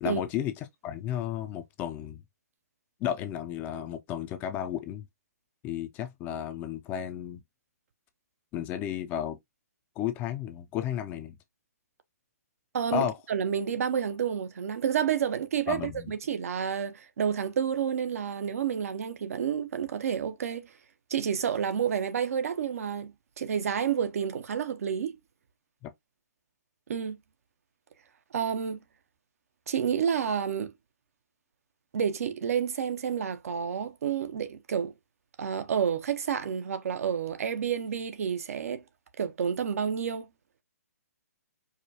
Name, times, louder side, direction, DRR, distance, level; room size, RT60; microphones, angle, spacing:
voice 1, 0.0-0.5 0.8-2.2 3.0-5.1 5.6-7.4 8.5-9.4 10.0-11.4 12.9-13.2 15.7-16.1 25.8-25.9, left 10 dB, 20° left, 0.5 m, -33 dB
voice 2, 12.7-20.7 21.1-25.2 26.9-27.2 28.3-28.8 29.7-30.7 31.9-34.9 35.4-38.8 39.2-40.3, right 8 dB, 60° right, 0.7 m, -30 dB
4.9 x 2.2 x 2.8 m
hypercardioid pair, 145°, 9 cm